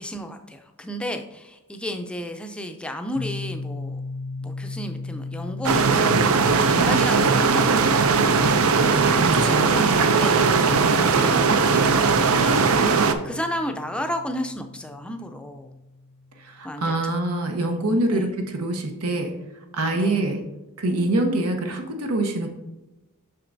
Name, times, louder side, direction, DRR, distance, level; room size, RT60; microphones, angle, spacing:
voice 1, 0.0-4.0 4.4-7.9 8.9-15.8 16.6-17.1 18.1-18.3 19.9-20.3, equal, 5° left, 5 dB, 0.4 m, -33 dB
sound 1, 3.2-16.8, left 2 dB, 90° left, 0.7 m, -36 dB
sound 2, 5.6-13.1, right 5 dB, 70° right, 0.5 m, -19 dB
voice 2, 9.2-9.8 16.4-19.3 19.7-20.4 20.8-22.5, right 2 dB, 90° right, 4 dB, 1.0 m, -25 dB
7.5 x 5.8 x 2.6 m, 1.0 s
head